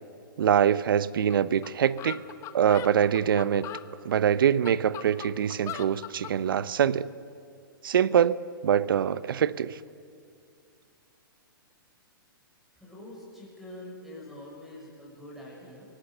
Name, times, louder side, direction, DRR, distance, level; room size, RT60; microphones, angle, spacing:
voice 1, 0.4-2.2 2.5-3.7 4.0-7.1 7.8-8.4 8.6-9.8, right 9 dB, 70° right, 0.8 m, -24 dB
sound 1, 1.3-1.4 1.6-1.7 2.0-3.9 4.4-6.4, left 11 dB, 25° left, 1.1 m, -39 dB
voice 2, 12.8-15.9, left 1 dB, ahead, 7.2 m, -45 dB
25.0 x 18.0 x 6.8 m
hypercardioid pair, 125°, 12 cm